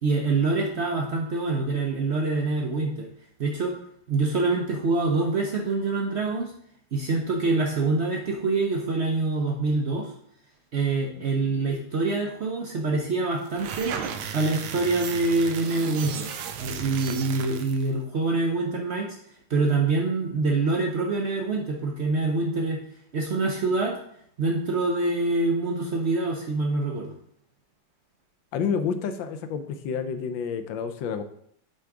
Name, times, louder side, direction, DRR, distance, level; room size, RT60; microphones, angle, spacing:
voice 1, 0.0-3.1 3.4-3.8 4.1-6.5 6.9-10.1 10.7-14.0 14.3-16.3 16.6-19.2 19.5-22.8 23.1-24.0 24.4-27.1, right 3 dB, 70° right, 1 dB, 0.6 m, -25 dB
sound 1, 13.4-17.9, right 7 dB, 85° right, 1.5 m, -35 dB
voice 2, 28.5-31.2, left 6 dB, 80° left, 9 dB, 1.3 m, -29 dB
6.9 x 3.7 x 4.7 m, 0.68 s
omnidirectional pair, 2.1 m